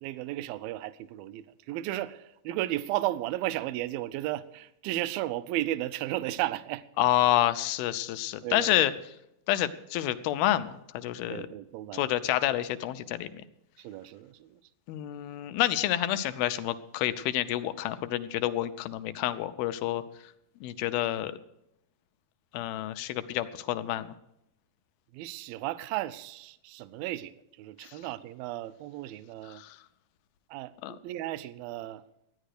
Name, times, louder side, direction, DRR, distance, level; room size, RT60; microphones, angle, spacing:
voice 1, 0.0-6.8 8.4-8.9 11.3-12.2 13.8-14.6 25.1-29.6 30.5-32.0, right 15 dB, 80° right, 2.3 m, -34 dB
voice 2, 7.0-8.9 9.5-11.5 11.9-13.3 14.9-20.0 20.6-21.4 22.5-24.1 29.5-29.8 30.8-31.0, left 13 dB, 90° left, 2.6 m, -28 dB
13.5 x 10.0 x 6.6 m
omnidirectional pair, 4.2 m